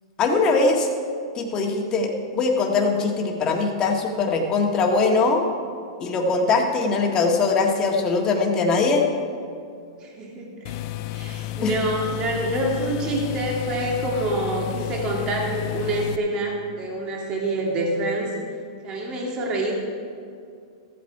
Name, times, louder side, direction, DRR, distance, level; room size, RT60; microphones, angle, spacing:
voice 1, 0.2-0.9 1.3-5.4 6.0-9.1 11.6-11.7, left 3 dB, 30° left, 1 dB, 1.7 m, -21 dB
voice 2, 10.0-10.8 11.1-18.3 18.8-19.7, right 1 dB, 30° right, -1 dB, 2.2 m, -26 dB
sound 1, 10.6-16.2, left 12 dB, 50° left, 0.5 m, -32 dB
14.5 x 8.5 x 4.7 m, 2.4 s
hypercardioid pair, 125°, 3 cm